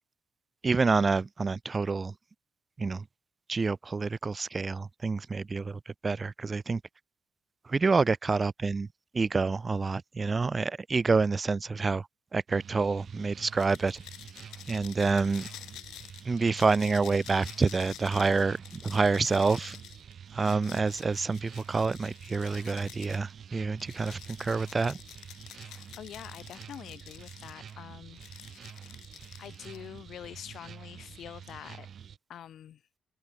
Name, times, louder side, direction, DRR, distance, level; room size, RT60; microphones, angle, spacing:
voice 1, 0.6-2.1 2.8-3.0 3.5-6.8 7.7-8.9 9.1-12.0 12.3-14.0 14.7-15.5 16.3-18.6 18.8-19.8 20.3-25.0, right 4 dB, 30° right, 0.3 m, -27 dB
sound 1, 12.5-32.2, right 8 dB, 55° right, 5.3 m, -48 dB
sound 2, 13.5-23.3 23.8-27.7 28.2-30.0, left 14 dB, 85° left, 3.3 m, -49 dB
voice 2, 25.6-28.2 28.8-29.0 29.4-31.9 32.3-32.8, left 10 dB, 70° left, 4.4 m, -46 dB
open air
cardioid pair, 90°, 0 cm